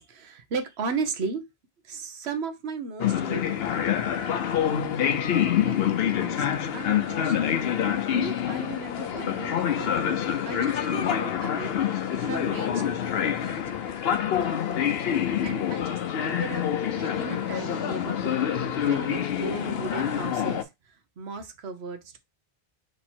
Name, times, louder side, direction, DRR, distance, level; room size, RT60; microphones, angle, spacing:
voice 1, 0.0-1.4 1.8-4.5 5.0-6.4 6.7-7.6 7.8-12.8 15.4-16.7 16.9-18.4 18.9-22.2, right 4 dB, 85° right, 1.1 m, -36 dB
sound 1, 3.0-20.6, left 9 dB, 75° left, 0.8 m, -26 dB
3.5 x 2.9 x 4.2 m
omnidirectional pair, 1.0 m